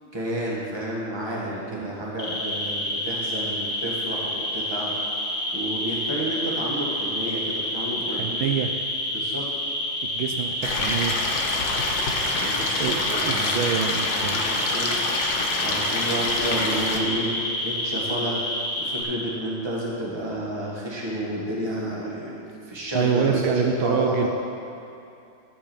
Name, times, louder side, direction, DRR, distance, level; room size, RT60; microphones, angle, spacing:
voice 1, 0.1-4.9 5.5-8.4 9.1-9.4 12.3-13.5 14.1-15.1 15.6-17.3 17.6-18.4 18.8-24.3, right 1 dB, 15° right, -5 dB, 1.5 m, -30 dB
sound 1, 2.2-19.0, equal, 25° left, 3.2 m, -29 dB
voice 2, 8.1-8.7 10.0-11.2 12.8-14.4 22.9-24.3, right 7 dB, 75° right, 4 dB, 1.4 m, -26 dB
Stream, 10.6-17.0, left 3 dB, 65° left, 1.6 m, -27 dB
11.0 x 5.3 x 7.3 m, 2.6 s
omnidirectional pair, 2.3 m